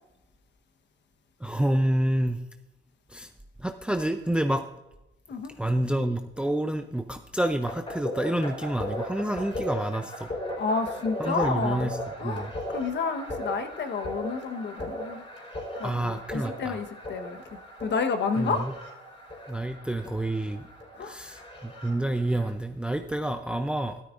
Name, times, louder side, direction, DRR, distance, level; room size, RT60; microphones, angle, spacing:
voice 1, 1.4-2.4 3.1-3.3 3.6-4.6 5.6-10.3 11.2-12.0 12.2-12.5 15.8-16.8 18.4-18.7 19.5-20.6 21.0-24.0, right 1 dB, 5° right, 7 dB, 0.5 m, -28 dB
sound 1, 7.7-22.5, left 1 dB, 30° left, 4.2 m, -37 dB
voice 2, 10.6-11.9 12.2-15.2 15.8-17.4 17.8-18.6 21.0-21.1, left 4 dB, 60° left, 7 dB, 1.1 m, -30 dB
13.0 x 12.5 x 2.5 m, 0.94 s
cardioid pair, 90°, 20 cm